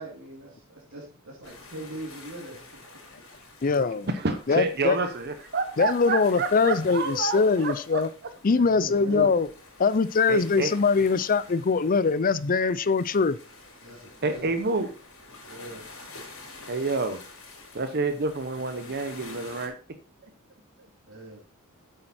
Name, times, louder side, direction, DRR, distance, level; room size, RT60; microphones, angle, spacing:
voice 1, 0.0-2.8 8.5-9.3 13.8-14.4 15.5-15.8 21.1-21.4, right 1 dB, 70° right, -3 dB, 3.0 m, -40 dB
sound 1, 1.4-19.7, left 3 dB, 75° left, 4.6 m, -48 dB
voice 2, 3.6-4.1 4.5-5.0 5.8-8.1 8.4-9.5 9.8-13.4, left 4 dB, 40° left, 17 dB, 0.5 m, -22 dB
voice 3, 4.1-8.0 10.3-10.7 14.2-14.9 16.7-17.2 17.7-19.7, right 3 dB, 50° right, 8 dB, 0.9 m, -28 dB
8.6 x 7.8 x 4.3 m, 0.35 s
head